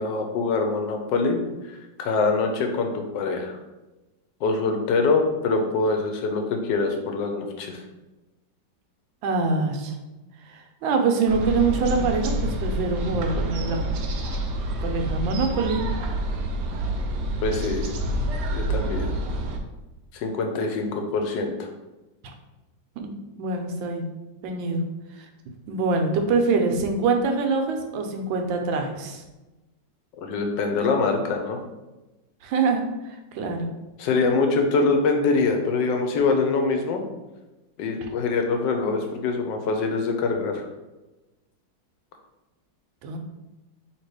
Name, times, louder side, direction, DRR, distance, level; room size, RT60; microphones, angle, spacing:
voice 1, 0.0-1.4 1.7-3.6 4.4-7.8 17.4-17.9 18.5-19.2 20.1-21.7 30.2-31.6 34.0-37.0 37.8-40.7, left 4 dB, 80° left, 4 dB, 1.2 m, -24 dB
voice 2, 9.2-9.9 10.5-13.8 14.8-15.8 23.0-24.1 24.4-24.8 25.7-29.2 32.4-32.8 33.1-33.7 43.0-43.2, right 4 dB, 90° right, 4 dB, 1.4 m, -24 dB
sound 1, 11.3-19.6, right 1 dB, 75° right, 1.1 m, -28 dB
3.3 x 2.9 x 4.6 m, 1.1 s
omnidirectional pair, 2.0 m